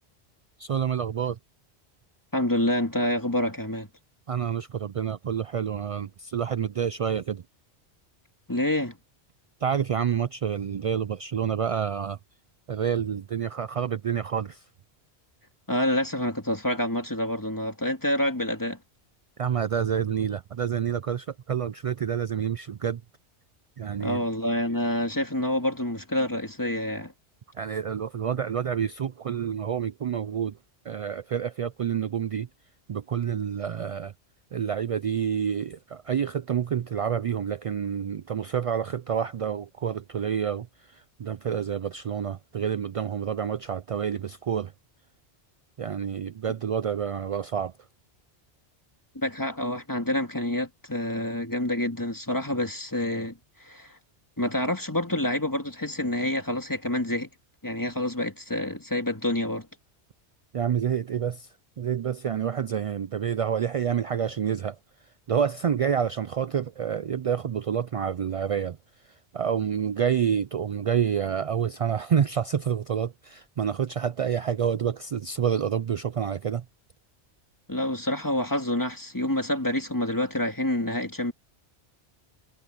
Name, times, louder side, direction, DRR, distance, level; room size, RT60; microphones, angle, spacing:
voice 1, 0.6-1.4 4.3-7.4 9.6-12.2 12.7-14.6 19.4-23.0 23.8-24.2 27.6-30.6 30.9-32.5 32.9-34.1 34.5-44.7 45.8-47.7 60.5-61.5 61.8-64.8 65.3-68.8 69.3-76.6, right 8 dB, 60° right, 0.3 m, -28 dB
voice 2, 2.3-3.9 8.5-9.0 15.7-18.8 24.0-27.1 49.1-54.0 54.4-57.3 57.6-59.7 77.7-81.3, left 1 dB, 20° left, 2.2 m, -27 dB
omnidirectional pair, 1.1 m